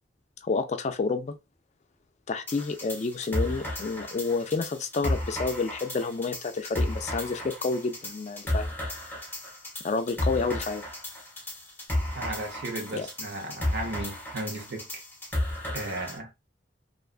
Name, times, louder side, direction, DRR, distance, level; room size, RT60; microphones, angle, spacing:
voice 1, 0.4-1.4 2.3-8.7 9.8-10.8 12.9-13.1, left 4 dB, 40° left, 0.3 m, -29 dB
sound 1, 2.5-16.2, left 1 dB, 10° left, 0.7 m, -33 dB
voice 2, 12.1-15.0 15.7-16.3, right 1 dB, 80° right, 0.8 m, -35 dB
2.5 x 2.3 x 2.3 m
head